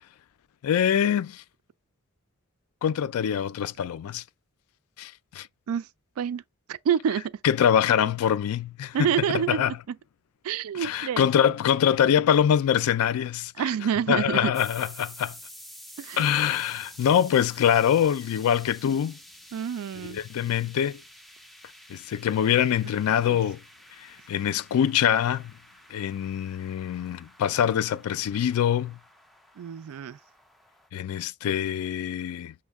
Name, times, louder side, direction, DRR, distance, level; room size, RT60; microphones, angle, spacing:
voice 1, 0.6-1.4 2.8-4.2 5.0-5.5 7.4-9.7 10.7-13.5 14.1-15.4 16.2-19.2 20.1-21.0 21.9-23.6 24.0-25.5 25.9-29.0 30.9-32.5, left 9 dB, 85° left, 0.3 m, -24 dB
voice 2, 6.7-7.3 8.9-10.0 10.4-11.5 13.6-14.5 16.0-16.3 19.5-20.2 23.3-23.4 29.6-30.2, right 8 dB, 80° right, 0.3 m, -28 dB
sound 1, 14.5-30.9, equal, ahead, 0.3 m, -50 dB
6.1 x 2.2 x 3.4 m
head